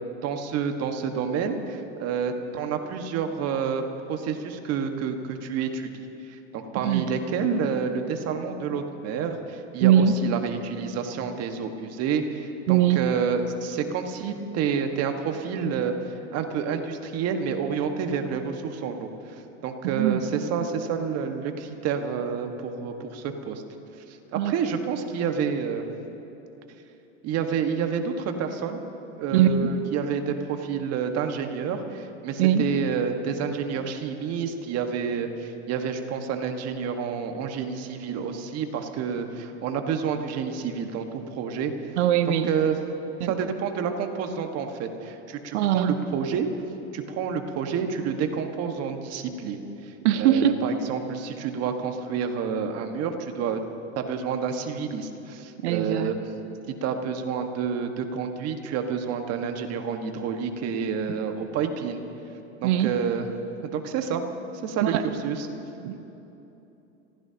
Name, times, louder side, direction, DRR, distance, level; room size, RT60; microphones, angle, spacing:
voice 1, 0.2-3.8 4.1-5.9 6.3-19.1 19.6-23.6 24.1-25.9 27.2-28.8 29.2-41.7 42.3-42.8 43.3-46.5 46.9-53.6 53.9-56.2 56.8-62.0 62.6-63.3 63.6-64.2 64.6-64.9 65.2-65.5, right 6 dB, 45° right, 5 dB, 1.6 m, -29 dB
voice 2, 9.8-10.1 12.7-13.0 19.8-20.2 24.3-24.5 29.3-29.7 32.4-32.6 42.0-42.5 43.2-43.3 45.5-46.0 50.0-50.6 55.6-56.1 62.6-62.9 64.8-65.0 65.8-66.0, right 10 dB, 70° right, 9 dB, 1.0 m, -21 dB
27.5 x 15.5 x 2.9 m, 3.0 s
hypercardioid pair, 100°, 36 cm